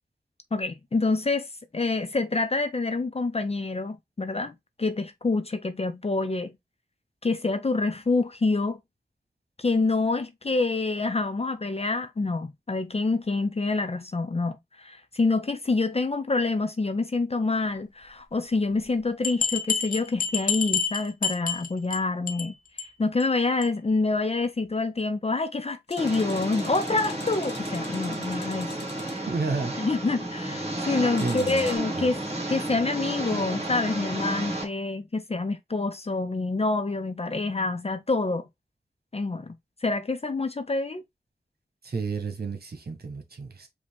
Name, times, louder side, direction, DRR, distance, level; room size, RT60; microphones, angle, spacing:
voice 1, 0.5-4.5 4.8-6.5 7.2-8.8 9.6-28.8 29.1-29.3 29.8-32.2 32.5-38.5 39.1-39.5 39.8-41.0, left 3 dB, 35° left, 0.5 m, -27 dB
sound 1, 19.2-22.0 22.3-22.5 22.8-22.9 23.2-23.3 23.6-23.7, left 5 dB, 55° left, 0.9 m, -28 dB
sound 2, 25.9-29.2 31.2-31.8, left 4 dB, 80° left, 1.0 m, -45 dB
Engine, 26.0-34.6, right 1 dB, 40° right, 1.9 m, -32 dB
voice 2, 29.3-29.7 31.2-31.6 31.9-32.1 41.8-43.7, right 4 dB, 70° right, 1.4 m, -31 dB
5.1 x 2.8 x 3.5 m
wide cardioid pair, 85°, 17 cm